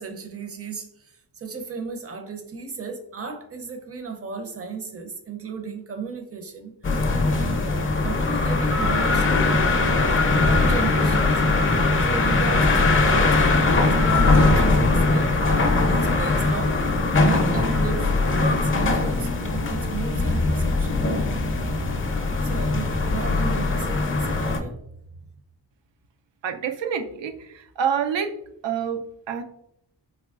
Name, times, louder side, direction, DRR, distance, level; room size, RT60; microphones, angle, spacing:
voice 1, 0.0-6.7 7.3-9.6 10.3-11.3 12.0-16.8 17.1-21.0 21.8-25.0, right 5 dB, 35° right, 5 dB, 0.6 m, -35 dB
sound 1, 6.8-24.6, left 3 dB, 30° left, 0.4 m, -21 dB
voice 2, 26.4-28.3 28.6-29.4, right 7 dB, 85° right, 6 dB, 0.5 m, -27 dB
3.6 x 2.9 x 2.3 m, 0.76 s
wide cardioid pair, 95°, 43 cm